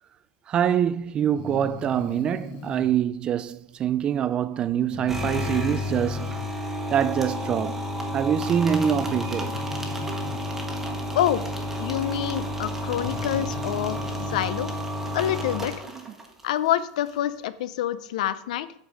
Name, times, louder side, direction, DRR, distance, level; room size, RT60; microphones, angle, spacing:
voice 1, 0.5-6.3 6.9-7.8 8.1-9.5, right 9 dB, 25° right, 0.3 m, -25 dB
Breathing, 1.3-2.9 4.9-6.5 7.9-8.0 8.9-10.4 12.0-12.1 12.8-14.5, left 7 dB, 45° left, 0.9 m, -39 dB
sound 1, 5.1-16.4, equal, 5° right, 1.1 m, -31 dB
voice 2, 11.8-14.7 15.1-15.7 16.4-18.7, left 11 dB, 75° left, 0.6 m, -27 dB
8.0 x 5.6 x 4.9 m
supercardioid pair, 155°, 4 cm